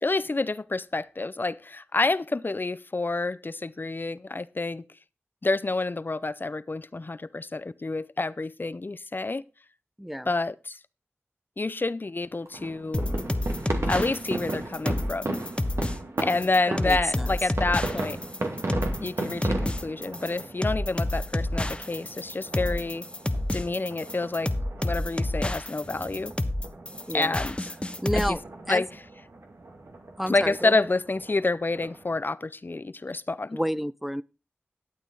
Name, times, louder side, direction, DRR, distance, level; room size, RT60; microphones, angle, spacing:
voice 1, 0.0-4.8 5.4-9.4 10.3-10.8 11.6-13.0 13.9-15.3 16.2-18.2 19.0-23.1 23.5-24.5 24.8-26.3 27.1-27.6 28.3-28.4 28.7-28.9 30.3-33.6, left 3 dB, 45° left, 0.5 m, -28 dB
voice 2, 10.0-10.3 16.7-17.3 27.1-27.4 28.0-28.4 28.7-28.8 30.2-30.8 33.5-34.2, equal, 5° right, 0.4 m, -30 dB
sound 1, 12.5-32.2, right 2 dB, 75° right, 2.2 m, -36 dB
sound 2, 12.9-28.3, left 1 dB, 25° left, 1.1 m, -29 dB
12.0 x 8.6 x 3.8 m
cardioid pair, 40°, 5 cm